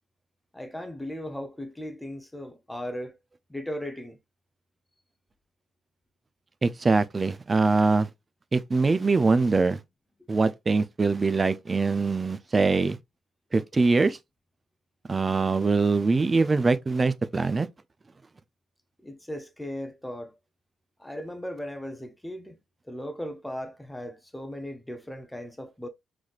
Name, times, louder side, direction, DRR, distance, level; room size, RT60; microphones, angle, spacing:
voice 1, 0.5-3.2 3.5-4.2 19.0-20.3 21.0-22.6 22.9-25.9, equal, 5° left, 0.7 m, -37 dB
voice 2, 6.6-8.1 8.5-9.8 10.3-13.0 13.5-14.2 15.1-17.7, right 3 dB, 30° right, 0.4 m, -23 dB
3.9 x 3.1 x 2.4 m
cardioid pair, 90°, 0 cm